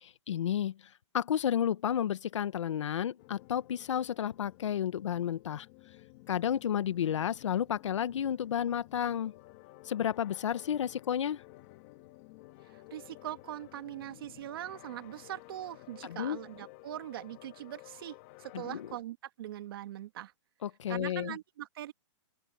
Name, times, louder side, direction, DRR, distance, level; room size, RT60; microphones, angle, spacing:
voice 1, 0.3-0.8 1.1-5.7 6.3-9.3 9.8-11.4 16.0-16.4 18.5-18.9 20.6-21.4, left 9 dB, 70° left, 1.2 m, -31 dB
sound 1, 3.2-19.0, left 19 dB, 30° left, 1.7 m, -54 dB
voice 2, 12.7-20.3 20.9-21.9, right 13 dB, 50° right, 2.1 m, -42 dB
open air
hypercardioid pair, 170°, 16 cm